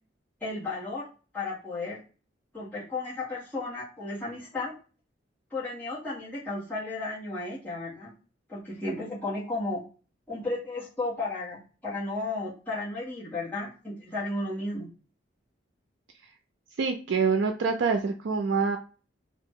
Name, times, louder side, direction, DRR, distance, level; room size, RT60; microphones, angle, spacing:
voice 1, 0.4-1.1 1.3-2.0 2.5-4.7 5.5-8.1 8.5-9.8 10.3-14.9, left 2 dB, 10° left, -7 dB, 1.4 m, -34 dB
voice 2, 16.8-18.8, right 5 dB, 80° right, 4 dB, 0.4 m, -26 dB
2.9 x 2.5 x 3.6 m, 0.37 s
head